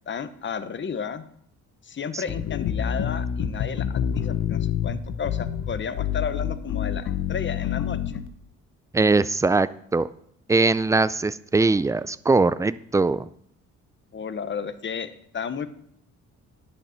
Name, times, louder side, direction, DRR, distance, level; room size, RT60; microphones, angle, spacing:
voice 1, 0.1-1.2 1.8-8.2 14.1-15.7, left 6 dB, 40° left, 12 dB, 0.9 m, -33 dB
sound 1, 2.3-8.3, left 9 dB, 70° left, 0.9 m, -27 dB
voice 2, 8.9-10.1 10.5-13.3, right 3 dB, 10° right, 17 dB, 0.3 m, -21 dB
11.0 x 6.7 x 5.8 m, 0.68 s
cardioid pair, 90°, 30 cm